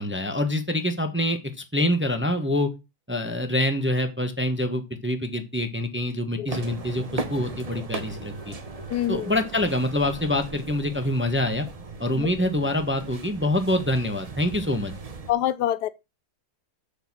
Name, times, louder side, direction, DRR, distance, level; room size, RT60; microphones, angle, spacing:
voice 1, 0.0-1.4 1.7-2.7 3.1-8.5 9.1-11.7 12.0-14.9, left 1 dB, 10° right, 1.0 m, -25 dB
sound 1, 6.5-15.3, right 3 dB, 30° right, 0.8 m, -38 dB
voice 2, 8.9-9.3 12.2-12.3 15.3-15.9, left 11 dB, 75° left, 1.3 m, -25 dB
7.9 x 6.6 x 6.1 m
omnidirectional pair, 1.8 m